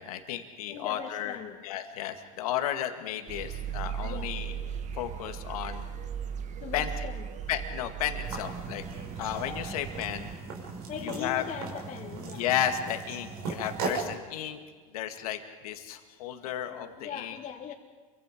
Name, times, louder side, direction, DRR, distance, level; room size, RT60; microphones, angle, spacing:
voice 1, 0.0-1.4 1.6-4.5 4.9-5.9 6.7-6.9 7.5-8.8 9.2-10.3 11.0-11.4 12.3-14.6 14.9-17.4, left 10 dB, 80° left, 6 dB, 2.0 m, -33 dB
voice 2, 0.7-1.6 4.0-4.3 6.6-7.3 10.9-12.5 16.7-17.7, left 8 dB, 45° left, 0 dB, 2.2 m, -40 dB
sound 1, 3.3-10.3, right 8 dB, 40° right, 1.6 m, -38 dB
sound 2, 8.2-14.1, right 4 dB, 90° right, 5.6 m, -38 dB
28.5 x 24.5 x 5.2 m, 1.5 s
hypercardioid pair, 100°, 18 cm